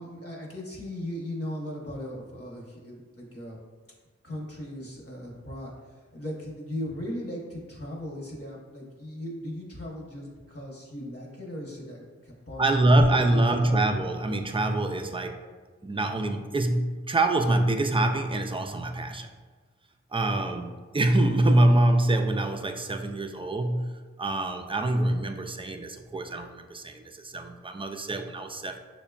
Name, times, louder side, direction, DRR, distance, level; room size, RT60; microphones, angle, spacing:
voice 1, 0.0-3.6 4.2-5.7 6.1-12.6 13.2-13.7, left 1 dB, 50° left, -3 dB, 1.1 m, -38 dB
voice 2, 12.6-15.4 15.8-19.3 20.1-28.8, right 1 dB, 20° right, 5 dB, 0.3 m, -25 dB
6.5 x 2.2 x 2.3 m, 1.4 s
wide cardioid pair, 40°, 29 cm